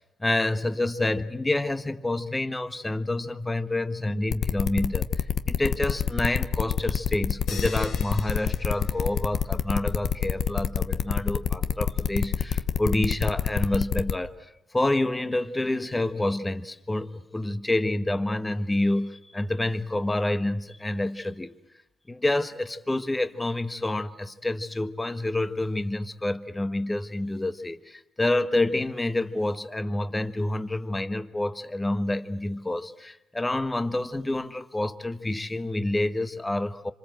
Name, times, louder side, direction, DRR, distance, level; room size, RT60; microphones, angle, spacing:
voice 1, 0.2-14.3 14.7-21.5 22.1-36.9, left 1 dB, 15° left, 1.3 m, -28 dB
sound 1, 4.3-14.1, left 8 dB, 55° left, 1.0 m, -26 dB
sound 2, 7.5-9.6, left 5 dB, 80° left, 5.3 m, -42 dB
27.0 x 26.0 x 7.8 m
cardioid pair, 90°, 0 cm